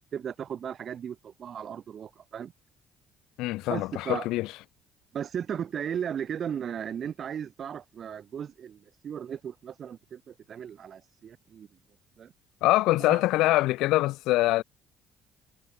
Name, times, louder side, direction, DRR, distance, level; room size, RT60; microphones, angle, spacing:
voice 1, 0.1-2.5 3.7-4.3 5.1-11.7 12.2-12.3 13.0-13.2, right 8 dB, 50° right, 5.3 m, -36 dB
voice 2, 3.4-4.5 12.6-14.6, left 18 dB, 85° left, 3.0 m, -24 dB
cardioid pair, 90°, 0 cm